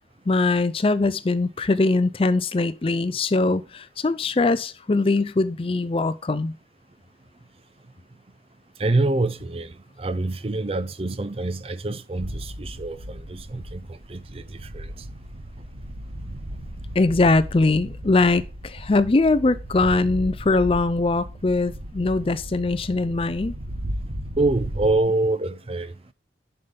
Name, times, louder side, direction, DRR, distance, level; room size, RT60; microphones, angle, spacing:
voice 1, 0.3-6.5 17.0-23.6, left 3 dB, 30° left, 0.4 m, -21 dB
voice 2, 8.8-9.7 10.0-13.8 14.1-14.4 14.7-14.9 24.4-25.9, right 2 dB, 30° right, 0.5 m, -25 dB
sound 1, 12.2-25.0, equal, 70° right, 1.2 m, -36 dB
10.5 x 5.5 x 3.3 m
head